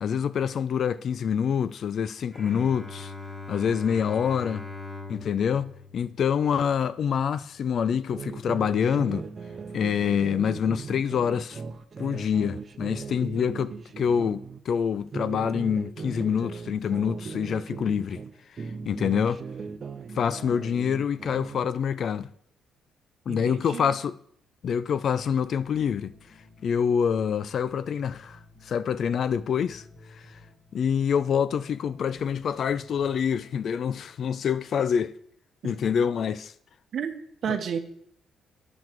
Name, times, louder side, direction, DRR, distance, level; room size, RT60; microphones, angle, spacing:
voice 1, 0.0-3.1 3.5-4.7 5.1-9.3 9.7-11.6 12.0-18.2 18.9-19.4 20.1-22.3 23.3-24.2 24.6-26.1 26.6-29.8 30.7-35.1 35.6-36.5 37.5-37.6, left 7 dB, 60° left, 0.4 m, -26 dB
Bowed string instrument, 2.3-7.6, left 3 dB, 5° left, 1.7 m, -42 dB
sound 1, 8.1-14.6 15.0-18.3 18.6-21.7, right 5 dB, 40° right, 0.6 m, -38 dB
voice 2, 23.3-24.0 35.6-35.9 36.9-37.8, right 7 dB, 60° right, 0.9 m, -32 dB
sound 2, 25.0-34.6, left 2 dB, 30° left, 1.2 m, -54 dB
9.5 x 6.1 x 4.6 m
cardioid pair, 90°, 0 cm